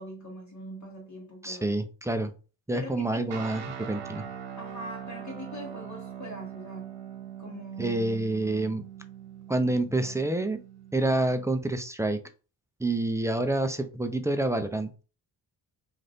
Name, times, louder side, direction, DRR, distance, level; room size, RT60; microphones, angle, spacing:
voice 1, 0.0-1.7 2.7-3.3 4.6-7.0 7.4-8.0, equal, 40° left, 1.0 m, -42 dB
voice 2, 1.4-2.3 2.7-4.2 7.8-8.8 9.5-10.6 10.9-12.2 12.8-14.9, right 2 dB, 5° right, 0.4 m, -28 dB
sound 1, 3.3-11.6, right 8 dB, 75° right, 0.9 m, -42 dB
2.5 x 2.5 x 3.4 m
supercardioid pair, 55°, 45 cm